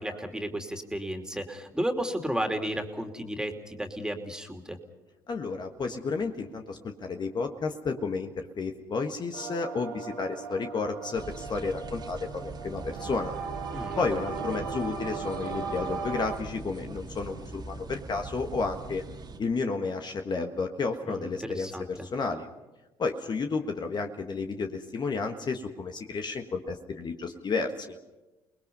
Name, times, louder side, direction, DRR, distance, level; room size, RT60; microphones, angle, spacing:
voice 1, 0.0-4.8 13.7-14.0 21.1-22.1, right 1 dB, 5° right, 5 dB, 3.0 m, -33 dB
voice 2, 5.3-13.3 14.0-19.0 19.4-22.5 23.0-28.0, left 4 dB, 40° left, 5 dB, 1.6 m, -32 dB
sound 1, 9.3-16.4, right 5 dB, 85° right, 1.9 m, -37 dB
sound 2, 11.1-19.4, right 3 dB, 40° right, 2.1 m, -42 dB
29.5 x 20.5 x 5.5 m, 1.1 s
hypercardioid pair, 55°, 11 cm